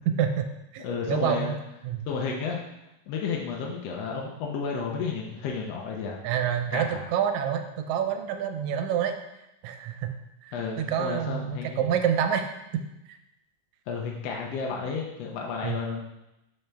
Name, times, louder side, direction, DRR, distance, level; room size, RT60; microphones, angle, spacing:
voice 1, 0.1-0.5 0.7-1.6 1.8-2.1 6.2-9.2 9.6-10.1 10.4-12.5 13.1-13.2 15.6-15.8, right 8 dB, 80° right, 6 dB, 1.9 m, -27 dB
voice 2, 0.8-1.5 2.0-2.6 3.1-6.2 6.7-7.0 10.5-11.8 13.9-16.0, left 5 dB, 70° left, -1 dB, 1.7 m, -32 dB
7.1 x 5.5 x 3.4 m, 0.90 s
omnidirectional pair, 3.4 m